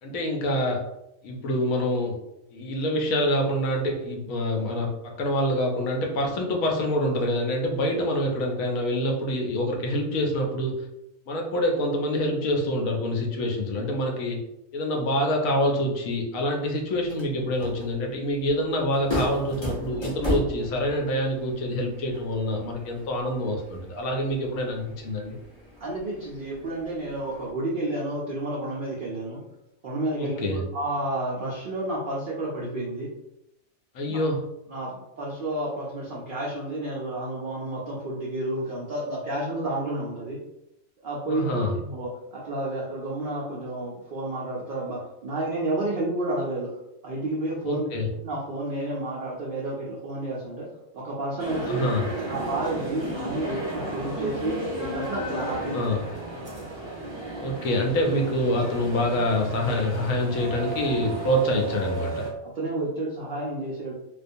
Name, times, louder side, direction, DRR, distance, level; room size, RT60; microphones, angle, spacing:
voice 1, 0.0-0.9 1.2-2.2 2.5-10.9 11.3-14.4 14.7-25.4 30.2-30.6 33.9-34.5 41.3-41.7 47.6-48.1 51.7-52.0 55.7-56.0 57.4-62.3, left 1 dB, 75° left, 1 dB, 1.0 m, -26 dB
sound 1, 16.9-27.5, left 1 dB, 35° left, 0.4 m, -36 dB
voice 2, 25.8-29.4 29.8-33.1 34.1-34.2 34.7-40.4 41.0-46.7 47.0-50.7 50.9-51.8 52.2-55.8 62.4-63.9, right 1 dB, 75° right, -4 dB, 0.4 m, -31 dB
sound 2, 51.4-62.3, right 1 dB, 25° right, 0.6 m, -34 dB
2.4 x 2.2 x 2.5 m, 0.86 s
omnidirectional pair, 1.5 m